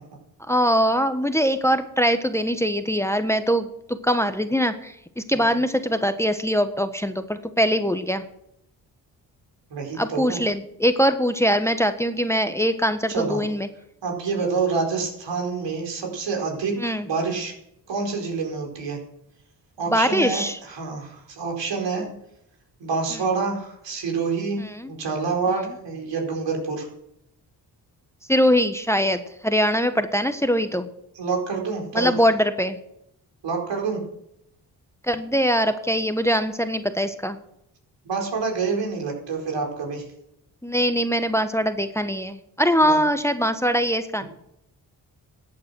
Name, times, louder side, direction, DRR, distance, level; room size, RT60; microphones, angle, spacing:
voice 1, 0.5-8.2 10.0-13.7 16.8-17.1 19.9-20.6 24.6-24.9 28.3-30.9 31.9-32.8 35.0-37.4 40.6-44.2, equal, 5° left, 9 dB, 1.4 m, -22 dB
voice 2, 9.7-10.4 13.1-13.4 14.0-17.5 17.9-19.0 19.8-22.1 22.8-24.6 24.9-26.9 31.1-32.1 33.4-34.0 38.0-40.1 42.9-43.0, right 4 dB, 70° right, 1 dB, 4.6 m, -27 dB
13.5 x 8.8 x 6.4 m, 0.77 s
supercardioid pair, 45°, 44 cm